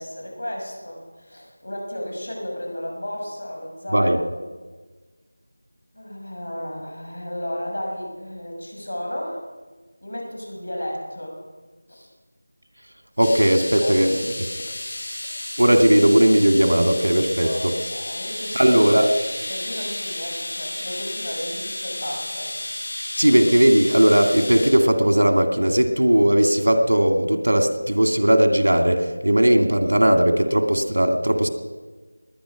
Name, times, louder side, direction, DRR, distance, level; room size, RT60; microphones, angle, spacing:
voice 1, 0.0-4.1 5.9-9.4 10.0-11.4 11.9-12.1 13.8-13.9 17.4-17.6 17.9-18.7 19.5-22.5, equal, 75° left, 0 dB, 6.0 m, -33 dB
sound 1, 13.2-24.7, left 1 dB, 40° left, 3.7 m, -32 dB
voice 2, 13.2-14.2 15.6-17.7 18.6-19.1 23.2-31.5, right 1 dB, 90° right, 6 dB, 2.2 m, -17 dB
20.5 x 10.0 x 6.2 m, 1.3 s
figure-of-eight pair, 175°, 0 cm